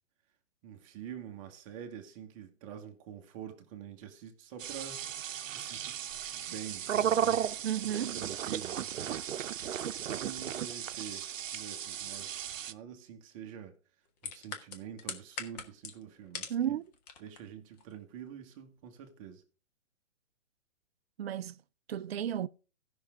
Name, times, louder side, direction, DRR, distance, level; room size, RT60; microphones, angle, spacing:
voice 1, 0.6-6.0 6.3-9.6 10.1-13.8 14.2-16.8 17.2-19.4, right 8 dB, 25° right, 1.2 m, -47 dB
sound 1, 4.6-12.7, right 9 dB, 80° right, 0.7 m, -35 dB
voice 2, 7.6-8.2 16.5-16.8 21.2-21.6 21.9-22.5, right 10 dB, 55° right, 0.5 m, -33 dB
sound 2, 14.2-16.7 16.9-17.4 17.8-17.9, left 6 dB, 30° left, 1.4 m, -41 dB
16.0 x 6.0 x 3.6 m
hypercardioid pair, 150°, 39 cm